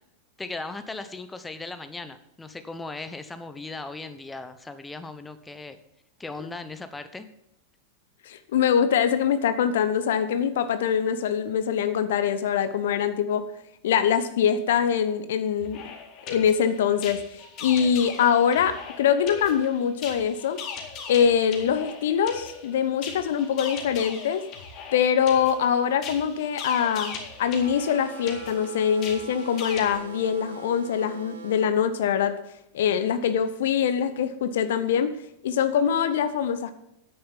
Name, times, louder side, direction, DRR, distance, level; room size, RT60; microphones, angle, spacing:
voice 1, 0.4-5.8 6.2-7.3, left 3 dB, 10° left, 10 dB, 0.9 m, -37 dB
voice 2, 8.2-13.4 13.8-15.9 16.3-20.6 21.1-24.4 24.9-32.4 32.7-35.1 35.4-36.7, left 8 dB, 60° left, 12 dB, 0.8 m, -23 dB
sound 1, 15.6-30.0, left 5 dB, 40° left, 2.2 m, -39 dB
sound 2, 27.6-31.7, right 8 dB, 65° right, 1.6 m, -42 dB
10.0 x 8.9 x 5.6 m, 0.78 s
figure-of-eight pair, 90°, 0 cm